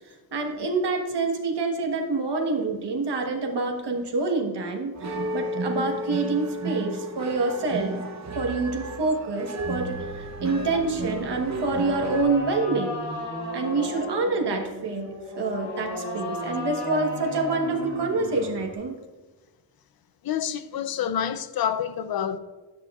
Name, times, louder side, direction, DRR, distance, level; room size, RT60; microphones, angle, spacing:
voice 1, 0.1-8.0 8.3-13.0 13.5-19.0, right 3 dB, 80° right, 1.3 m, -27 dB
sound 1, 4.9-12.2, right 2 dB, 40° right, 0.8 m, -33 dB
sound 2, 10.8-18.8, left 1 dB, 85° left, 2.4 m, -35 dB
voice 2, 20.2-22.4, left 9 dB, 60° left, 0.6 m, -28 dB
11.0 x 9.2 x 2.4 m
wide cardioid pair, 100°, 41 cm